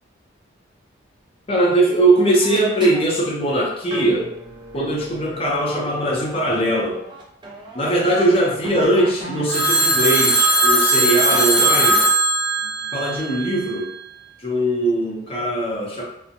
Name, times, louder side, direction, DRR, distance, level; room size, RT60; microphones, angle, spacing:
voice 1, 1.5-4.3 4.7-7.0 7.7-12.1 12.9-13.9 14.4-16.0, right 1 dB, 30° left, -3 dB, 0.5 m, -20 dB
sound 1, 2.2-3.2 3.9-8.3 8.6-10.4 11.3-12.1 12.6-13.2, right 1 dB, 25° right, 0.4 m, -36 dB
Telephone, 9.5-13.7, right 1 dB, 10° left, 0.9 m, -18 dB
2.6 x 2.0 x 2.5 m, 0.76 s
head